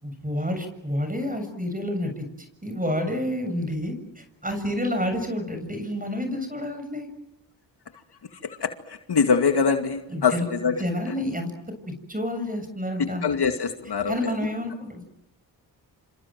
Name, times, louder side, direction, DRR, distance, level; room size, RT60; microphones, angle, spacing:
voice 1, 0.0-7.1 10.1-10.5 10.8-11.5 12.1-13.3 14.1-15.0, left 1 dB, 20° right, 7 dB, 7.3 m, -29 dB
voice 2, 9.1-10.8 13.0-14.2, left 5 dB, 60° left, 6 dB, 2.4 m, -23 dB
28.0 x 27.0 x 7.7 m, 0.88 s
cardioid pair, 55°, 45 cm